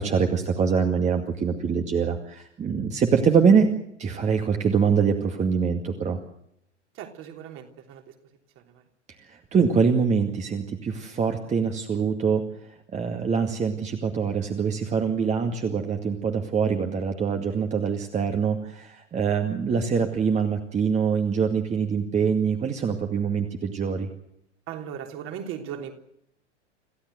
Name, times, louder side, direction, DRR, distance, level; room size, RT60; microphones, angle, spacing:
voice 1, 0.0-3.7 4.0-6.2 9.2-12.4 12.9-24.1, right 6 dB, 20° right, 5 dB, 2.2 m, -24 dB
voice 2, 6.9-8.1 8.5-8.8 24.7-25.9, right 9 dB, 35° right, 4 dB, 3.4 m, -37 dB
27.5 x 16.0 x 7.9 m, 0.74 s
figure-of-eight pair, 90°, 36 cm